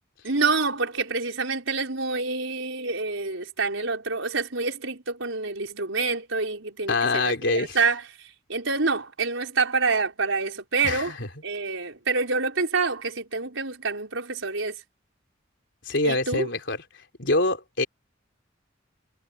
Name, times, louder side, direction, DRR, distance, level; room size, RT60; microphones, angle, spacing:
voice 1, 0.2-11.1 11.4-14.8 16.0-16.5, right 4 dB, 85° right, 4.7 m, -27 dB
voice 2, 6.9-7.8 10.8-11.3 15.8-16.8 17.2-17.9, left 2 dB, 65° left, 4.0 m, -25 dB
head